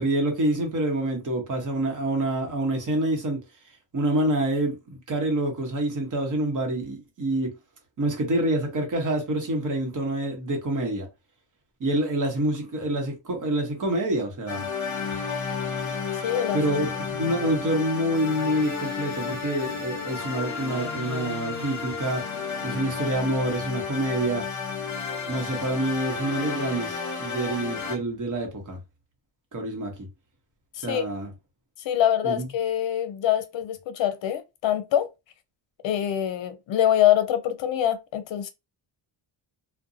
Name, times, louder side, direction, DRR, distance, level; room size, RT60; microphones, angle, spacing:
voice 1, 0.0-3.4 3.9-7.5 8.0-11.1 11.8-14.7 16.5-22.2 22.6-24.4 25.3-28.8 29.5-29.9 30.8-31.3 32.2-32.4, right 1 dB, 40° right, 1.0 m, -27 dB
sound 1, 14.5-28.0, left 5 dB, 35° left, 0.9 m, -32 dB
voice 2, 16.2-16.6 30.8-31.1 31.8-35.1 35.8-38.5, left 11 dB, 65° left, 0.6 m, -24 dB
2.5 x 2.2 x 2.5 m
cardioid pair, 145°, 49 cm